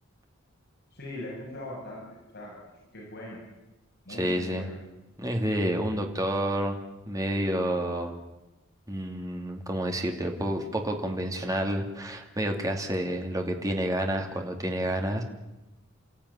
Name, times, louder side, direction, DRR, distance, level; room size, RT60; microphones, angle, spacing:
voice 1, 0.9-2.0 2.3-2.6 2.9-3.4 4.1-4.7, left 1 dB, 50° left, -3 dB, 7.2 m, -40 dB
voice 2, 4.1-4.7 5.2-6.8 7.1-8.2 8.9-15.2, right 1 dB, 15° right, 3 dB, 2.7 m, -29 dB
29.0 x 15.0 x 9.9 m, 1.0 s
head